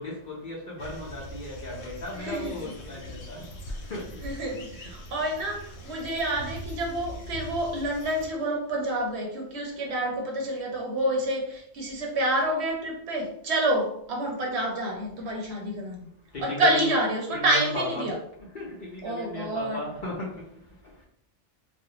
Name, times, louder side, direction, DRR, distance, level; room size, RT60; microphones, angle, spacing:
voice 1, 0.0-4.2 5.0-5.1 15.3-15.4 16.3-16.9 17.3-18.1 18.5-21.0, left 1 dB, 50° left, 0.7 m, -36 dB
sound 1, 0.8-8.3, equal, 85° left, 1.0 m, -41 dB
voice 2, 2.1-2.5 4.2-16.0 16.4-18.2 19.0-19.8, right 1 dB, 65° right, 0.8 m, -28 dB
2.5 x 2.1 x 2.8 m
omnidirectional pair, 1.3 m